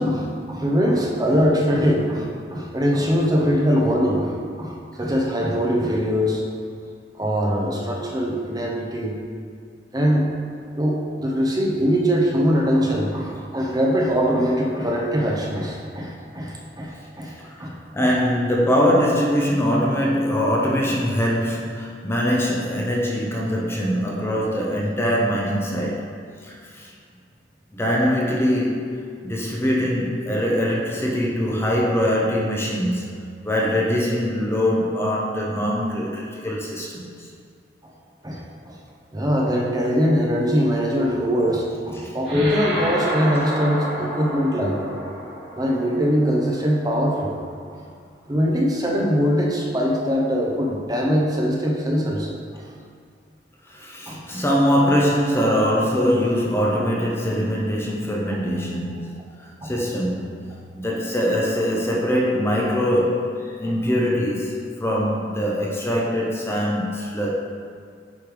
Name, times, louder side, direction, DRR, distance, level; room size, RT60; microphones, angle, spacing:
voice 1, 0.0-6.4 7.2-9.2 9.9-10.3 10.7-17.3 17.6-18.1 37.8-37.9 38.2-38.7 39.1-44.8 45.5-47.4 47.7-47.8 48.3-52.7 54.1-54.2 59.6-59.7, equal, 20° right, -1 dB, 0.7 m, -22 dB
voice 2, 17.4-26.0 26.4-26.9 27.8-29.0 29.2-33.1 33.4-37.3 42.0-42.2 53.7-59.2 59.4-67.3, equal, 15° left, -3 dB, 0.6 m, -22 dB
sound 1, 42.2-47.0, equal, 80° right, 1.7 m, -30 dB
8.3 x 3.3 x 4.7 m, 2.1 s
head